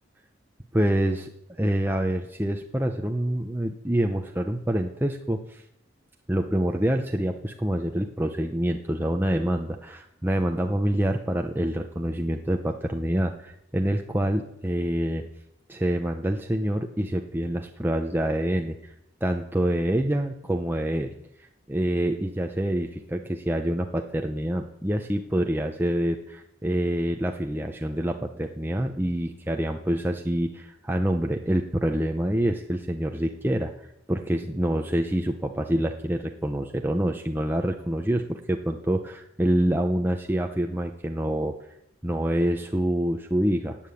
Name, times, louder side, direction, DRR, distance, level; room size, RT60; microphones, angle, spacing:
voice 1, 0.7-5.6 6.3-15.2 15.7-18.9 19.2-21.1 21.7-41.6 42.0-43.8, right 1 dB, 10° right, 4 dB, 0.8 m, -26 dB
17.0 x 8.9 x 8.5 m, 0.82 s
head